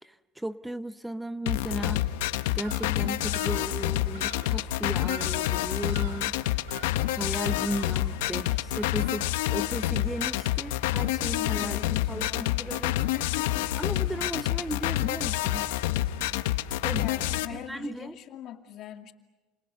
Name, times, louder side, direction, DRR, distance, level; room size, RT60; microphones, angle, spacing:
voice 1, 0.0-2.0 2.5-6.4 7.1-13.1 13.8-15.7 16.5-17.1 17.5-18.2, right 1 dB, 5° right, 12 dB, 0.8 m, -36 dB
sound 1, 1.5-17.5, left 14 dB, 85° left, 1.2 m, -28 dB
Bird vocalization bird call bird song, 2.6-3.7 4.1-4.6 5.0-5.5 5.9-6.3 6.7-7.2 7.6-8.1 8.8-9.3, right 6 dB, 85° right, 5.7 m, -46 dB
voice 2, 4.1-4.7 11.4-12.7 13.1-13.7 17.0-19.1, left 11 dB, 55° left, 6 dB, 2.4 m, -42 dB
29.0 x 28.0 x 6.8 m, 1.3 s
supercardioid pair, 100°, 0 cm